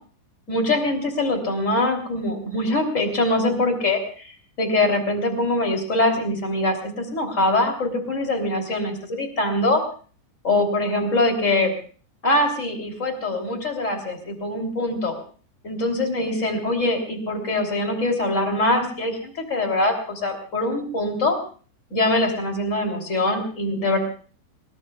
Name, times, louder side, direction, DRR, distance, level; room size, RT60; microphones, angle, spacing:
voice 1, 0.5-9.8 10.4-11.7 12.2-15.1 15.6-21.4 21.9-24.0, left 2 dB, 20° left, 3 dB, 2.6 m, -23 dB
29.0 x 20.0 x 2.4 m, 0.42 s
omnidirectional pair, 5.5 m